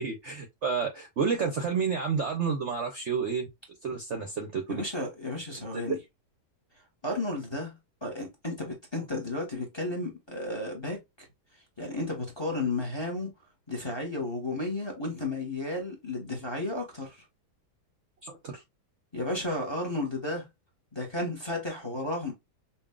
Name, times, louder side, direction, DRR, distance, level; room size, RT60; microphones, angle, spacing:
voice 1, 0.0-3.5 3.8-4.8 5.7-5.8 18.2-18.6, right 6 dB, 60° right, 0.8 m, -30 dB
voice 2, 4.7-6.0 7.0-11.3 11.8-13.3 13.7-17.2 19.1-20.5 20.9-22.3, left 2 dB, 20° left, 1.0 m, -33 dB
5.5 x 2.5 x 2.3 m
omnidirectional pair, 1.8 m